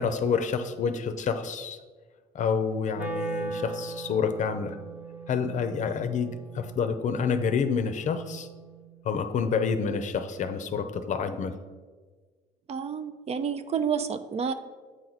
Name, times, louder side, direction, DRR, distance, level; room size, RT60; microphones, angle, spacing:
voice 1, 0.0-1.8 2.3-4.8 5.3-8.5 9.0-11.5, left 6 dB, 45° left, 9 dB, 0.6 m, -28 dB
Wind instrument woodwind instrument, 2.9-9.0, right 3 dB, 10° right, 0.8 m, -39 dB
voice 2, 12.7-14.5, right 7 dB, 40° right, 11 dB, 0.4 m, -29 dB
8.1 x 4.6 x 4.0 m, 1.4 s
cardioid pair, 110°, 17 cm